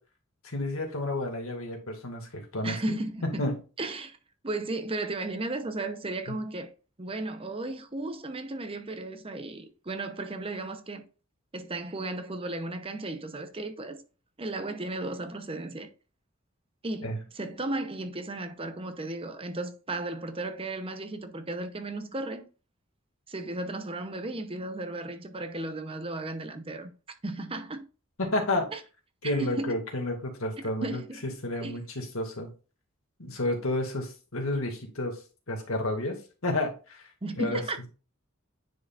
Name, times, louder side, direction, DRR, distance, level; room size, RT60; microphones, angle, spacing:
voice 1, 0.4-3.6 6.3-6.4 17.0-17.2 28.2-28.7 29.2-31.0 31.4-32.5 33.2-35.1 35.5-36.2 36.4-37.1 37.4-37.6, left 1 dB, 85° left, 2.1 m, -31 dB
voice 2, 2.6-3.5 3.8-4.2 4.4-6.7 7.0-11.0 11.5-14.0 14.4-15.9 16.8-22.5 23.3-26.9 27.2-27.8 28.7-28.8 29.2-29.8 30.8-31.2 31.6-31.8 37.2-37.9, right 2 dB, 25° right, 0.8 m, -35 dB
9.5 x 5.0 x 2.5 m
head